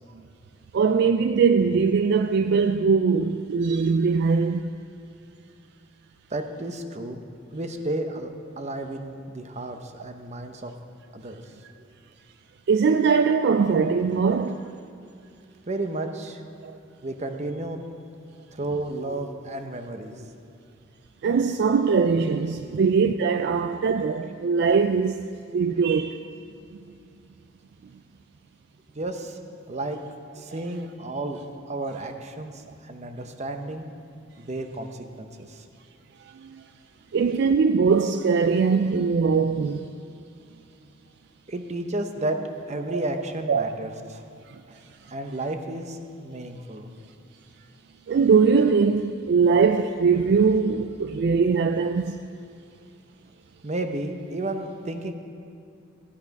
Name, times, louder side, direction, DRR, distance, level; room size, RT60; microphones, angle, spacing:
voice 1, 0.7-4.6 12.7-14.6 16.6-16.8 21.2-25.3 25.5-26.2 36.4-36.6 37.1-39.9 43.5-43.8 48.1-52.2, right 5 dB, 55° right, 0.3 m, -21 dB
voice 2, 6.3-7.2 7.5-10.7 11.1-11.4 11.8-11.9 15.7-16.4 17.0-17.8 18.5-20.4 22.2-22.8 23.5-23.6 28.9-30.0 30.3-31.4 31.7-33.9 34.4-35.6 41.5-42.4 42.7-44.2 44.7-44.8 45.1-46.9 53.6-55.1, right 2 dB, 35° right, 0.8 m, -32 dB
14.5 x 8.5 x 5.3 m
head